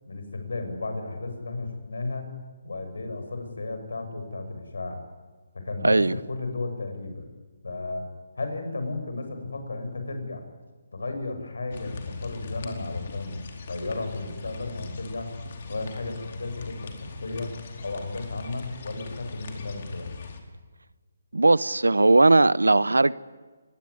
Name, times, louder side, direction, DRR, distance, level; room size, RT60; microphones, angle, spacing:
voice 1, 0.1-2.3 2.6-5.0 5.5-7.3 7.6-8.1 8.4-10.4 10.9-15.3 15.7-17.5 17.8-20.1, left 3 dB, 75° left, 6.8 m, -34 dB
voice 2, 5.8-6.1 21.3-23.1, right 2 dB, 90° right, 0.8 m, -18 dB
sound 1, 11.7-20.4, left 4 dB, 50° left, 4.6 m, -40 dB
24.5 x 20.0 x 9.7 m
figure-of-eight pair, 150°, 0 cm